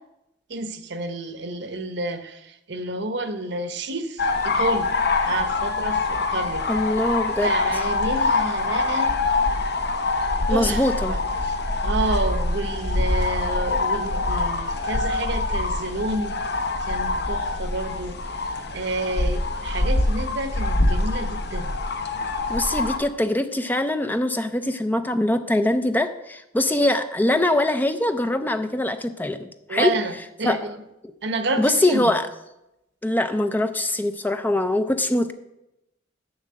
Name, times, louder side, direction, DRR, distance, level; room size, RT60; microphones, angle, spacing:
voice 1, 0.5-4.9 5.2-6.7 7.4-9.2 10.5-11.6 11.8-16.4 16.8-18.2 18.7-21.7 29.7-30.1 30.4-30.8 31.2-32.1, right 2 dB, 65° right, 9 dB, 0.8 m, -29 dB
sound 1, 4.2-23.0, left 2 dB, 60° left, 0.8 m, -24 dB
voice 2, 6.7-7.5 10.5-11.2 22.5-29.9 30.4-30.6 31.6-32.3 33.0-35.3, left 1 dB, 10° left, 9 dB, 0.4 m, -23 dB
7.2 x 6.4 x 7.5 m, 0.89 s
head